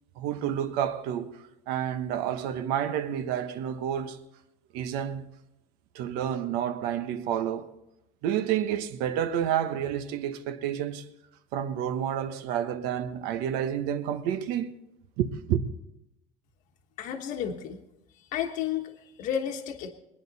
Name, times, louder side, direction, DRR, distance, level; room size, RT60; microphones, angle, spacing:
voice 1, 0.2-1.3 1.7-4.2 4.7-5.3 5.9-7.7 8.2-11.0 11.5-14.7 15.2-15.6, right 10 dB, 75° right, 1.1 m, -29 dB
voice 2, 17.0-17.8 18.3-19.9, left 9 dB, 55° left, 1.3 m, -32 dB
23.0 x 9.8 x 4.1 m
cardioid pair, 145°, 16 cm